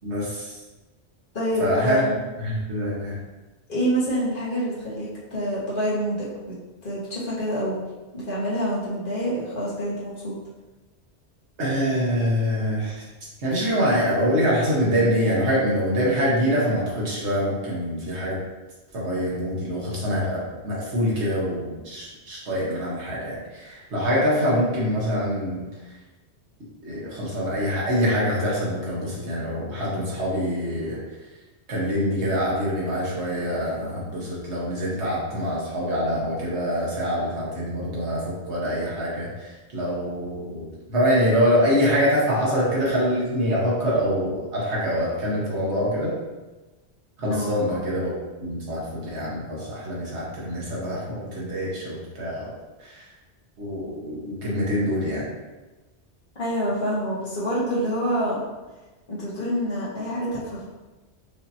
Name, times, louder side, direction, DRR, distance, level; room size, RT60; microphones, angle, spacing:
voice 1, 0.0-0.5 1.6-2.1 2.4-3.1 11.6-12.9 13.4-18.4 18.9-25.7 26.8-31.0 31.7-39.3 39.7-46.1 47.2-48.1 48.4-52.5 52.8-53.0 53.6-55.2, equal, 75° right, -6 dB, 1.5 m, -25 dB
voice 2, 1.3-2.0 3.7-6.5 6.8-7.8 8.1-10.3 47.3-47.6 56.4-58.4 59.1-60.7, equal, 50° left, -8 dB, 1.5 m, -26 dB
5.0 x 2.8 x 2.7 m, 1.1 s
omnidirectional pair, 1.2 m